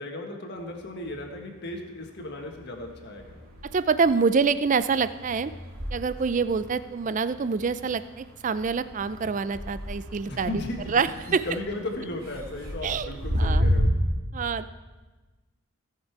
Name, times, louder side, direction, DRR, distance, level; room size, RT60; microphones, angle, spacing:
voice 1, 0.0-3.3 10.3-11.1 11.4-13.9, left 1 dB, 50° left, 2 dB, 1.5 m, -35 dB
sound 1, 0.6-1.8 2.1-13.8, equal, 80° right, 2.7 m, -33 dB
voice 2, 3.6-5.5 5.9-10.6 10.9-11.4 12.8-13.1 13.4-13.6 14.3-14.7, right 5 dB, 35° right, 14 dB, 0.3 m, -26 dB
17.5 x 6.6 x 4.7 m, 1.2 s
head